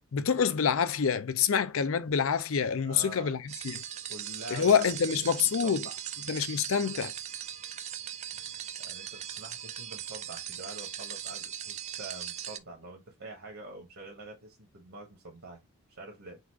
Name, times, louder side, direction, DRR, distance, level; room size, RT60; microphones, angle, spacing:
voice 1, 0.1-3.8 4.5-5.9 6.3-7.1, left 7 dB, 65° left, 0.5 m, -27 dB
voice 2, 2.8-3.3 4.1-5.2 5.6-5.9 8.3-15.6 15.9-16.4, right 2 dB, 70° right, 1.3 m, -46 dB
sound 1, 3.5-12.6, right 10 dB, 30° right, 0.3 m, -39 dB
4.0 x 2.4 x 4.5 m
head